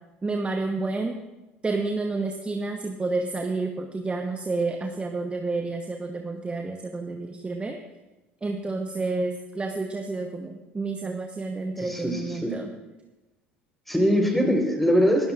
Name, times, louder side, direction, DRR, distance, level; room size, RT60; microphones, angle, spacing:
voice 1, 0.2-1.2 1.6-7.8 8.4-12.7 14.3-14.7, right 3 dB, 20° right, 4 dB, 1.1 m, -30 dB
voice 2, 11.8-12.5 13.9-15.3, equal, 5° left, 2 dB, 4.2 m, -22 dB
24.0 x 13.0 x 2.5 m, 1.1 s
figure-of-eight pair, 65°, 6 cm